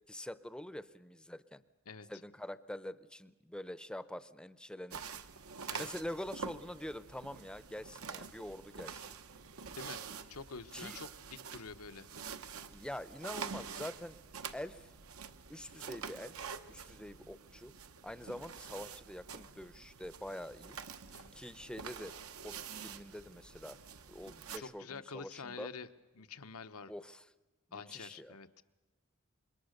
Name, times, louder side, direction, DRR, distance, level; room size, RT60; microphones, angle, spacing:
voice 1, 0.1-1.6 2.1-5.2 5.8-9.1 10.7-11.0 12.7-14.2 14.5-14.9 15.5-16.4 16.7-17.7 18.0-20.8 21.3-22.1 22.4-23.8 24.1-25.7 26.9-27.2 27.7-28.4, left 1 dB, 5° left, 14 dB, 0.7 m, -45 dB
sound 1, 4.9-24.6, right 6 dB, 70° right, 1.0 m, -47 dB
voice 2, 10.3-12.1 21.1-21.3 24.6-25.9 26.1-26.9 27.7-28.6, left 5 dB, 85° left, 10 dB, 1.1 m, -47 dB
26.5 x 22.5 x 6.7 m, 1.2 s
head